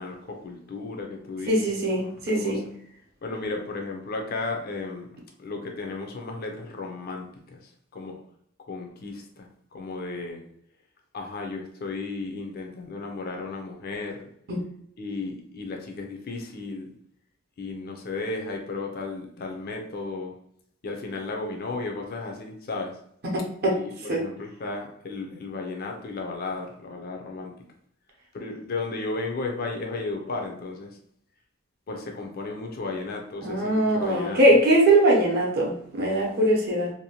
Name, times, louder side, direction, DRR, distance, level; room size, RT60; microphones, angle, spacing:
voice 1, 0.0-2.1 2.4-2.6 3.2-5.1 5.4-8.2 8.7-10.4 11.1-14.3 15.0-16.9 17.6-20.3 20.8-23.0 23.7-27.5 28.3-31.0 31.9-34.4, left 3 dB, 50° left, 2 dB, 0.4 m, -34 dB
voice 2, 1.5-2.6 14.5-14.6 23.3-23.8 24.1-24.2 33.4-36.9, right 1 dB, 50° right, -1 dB, 0.6 m, -21 dB
2.7 x 2.1 x 2.8 m, 0.68 s
head